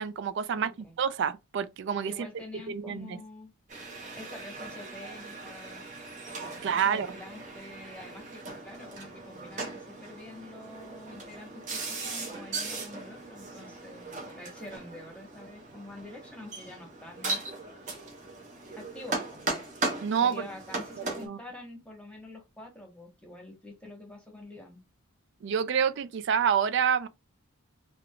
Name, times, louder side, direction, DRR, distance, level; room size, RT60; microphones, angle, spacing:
voice 1, 0.0-0.7 1.0-2.3 2.7-3.2 6.6-7.1 20.0-20.4 21.0-21.4 25.4-27.1, right 7 dB, 55° right, 0.3 m, -28 dB
voice 2, 0.6-1.0 2.1-3.5 4.1-5.8 6.8-17.4 18.8-19.4 20.2-24.8, left 2 dB, 5° left, 1.0 m, -46 dB
sound 1, 3.7-21.3, right 3 dB, 35° right, 0.8 m, -38 dB
3.4 x 2.4 x 2.2 m
head